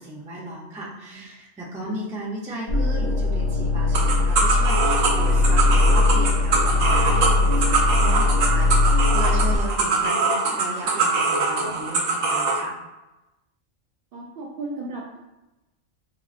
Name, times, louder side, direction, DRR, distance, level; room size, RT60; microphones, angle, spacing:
voice 1, 0.0-12.8, right 1 dB, 10° right, -5 dB, 0.3 m, -35 dB
sound 1, 2.7-9.6, left 3 dB, 60° left, 1.0 m, -20 dB
sound 2, 3.9-12.6, right 4 dB, 85° right, 1.0 m, -23 dB
voice 2, 14.1-15.2, right 2 dB, 60° right, -3 dB, 0.6 m, -35 dB
4.3 x 2.0 x 2.5 m, 0.99 s
omnidirectional pair, 1.3 m